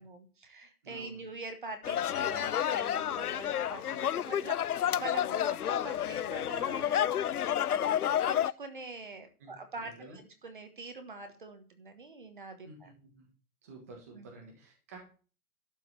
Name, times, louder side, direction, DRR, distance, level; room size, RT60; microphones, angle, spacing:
voice 1, 0.0-7.2 7.7-12.9 14.1-14.3, right 3 dB, 35° right, 7 dB, 1.4 m, -45 dB
voice 2, 0.8-1.2 9.4-9.5 9.8-10.2 12.6-13.3 13.6-15.0, right 3 dB, 10° right, 0 dB, 1.3 m, -51 dB
sound 1, 1.8-8.5, left 10 dB, 70° left, 0.6 m, -30 dB
12.0 x 5.4 x 8.1 m, 0.38 s
hypercardioid pair, 180°, 46 cm